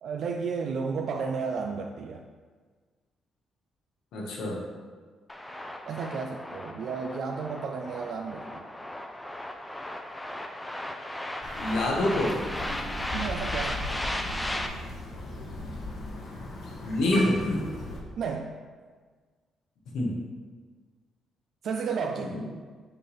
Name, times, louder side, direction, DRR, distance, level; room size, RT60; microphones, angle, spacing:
voice 1, 0.0-2.2 5.9-8.7 10.8-11.0 13.1-14.1 18.2-18.6 21.6-22.4, right 5 dB, 65° right, 3 dB, 0.4 m, -33 dB
voice 2, 4.1-4.6 11.6-12.3 16.8-17.6 19.9-20.1 22.3-22.4, left 1 dB, 80° left, -2 dB, 1.3 m, -26 dB
sound 1, 5.3-14.7, left 1 dB, 10° left, 0.5 m, -36 dB
Crow, 11.4-18.0, left 1 dB, 55° left, 1.2 m, -37 dB
5.6 x 3.4 x 5.6 m, 1.5 s
cardioid pair, 90°, 0 cm